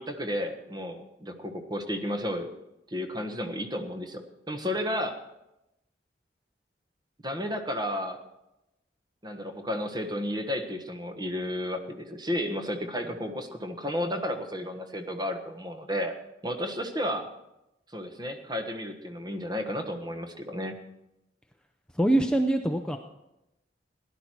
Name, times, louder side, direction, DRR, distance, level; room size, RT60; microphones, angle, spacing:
voice 1, 0.0-2.5 2.9-5.2 7.2-8.2 9.2-16.1 16.4-17.3 17.9-20.8, equal, 25° right, 5 dB, 1.4 m, -32 dB
voice 2, 21.9-23.0, right 1 dB, 5° left, 4 dB, 0.6 m, -24 dB
17.0 x 11.5 x 4.6 m, 0.89 s
head